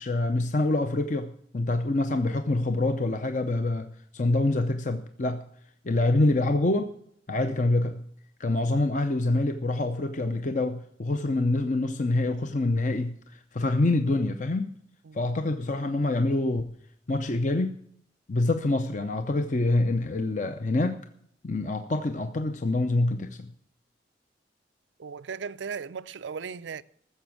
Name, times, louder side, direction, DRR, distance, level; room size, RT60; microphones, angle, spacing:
voice 1, 0.0-5.5 5.8-6.9 7.3-8.0 8.4-14.7 15.1-16.7 17.1-17.7 18.3-21.1 21.4-23.5, left 2 dB, 45° left, 0.7 m, -26 dB
voice 2, 25.0-26.8, right 6 dB, 85° right, 0.5 m, -37 dB
14.5 x 7.0 x 7.4 m
head